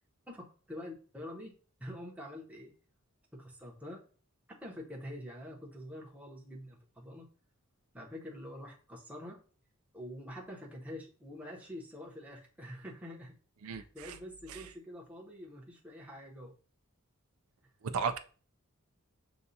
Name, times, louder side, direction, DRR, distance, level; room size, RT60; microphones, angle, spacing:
voice 1, 0.3-1.5 1.8-2.7 3.3-4.0 4.5-7.3 7.9-9.4 9.9-13.4 13.6-16.5, left 1 dB, 5° right, -3 dB, 0.9 m, -46 dB
voice 2, 13.6-14.2 14.5-14.6 17.8-18.2, right 6 dB, 90° right, 8 dB, 0.4 m, -35 dB
6.8 x 2.4 x 2.7 m, 0.39 s
head